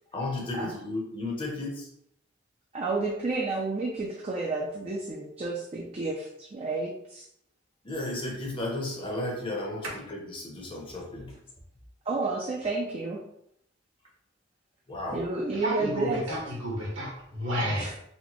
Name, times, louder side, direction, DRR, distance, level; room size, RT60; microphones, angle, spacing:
voice 1, 0.1-1.9 7.8-11.3 14.9-15.2, left 2 dB, 25° left, 0.8 m, -34 dB
voice 2, 2.7-7.2 12.1-13.2 15.1-16.2 17.7-17.9, right 3 dB, 30° right, 0.4 m, -31 dB
voice 3, 15.5-17.9, equal, 70° right, 1.3 m, -31 dB
4.1 x 2.2 x 3.0 m
head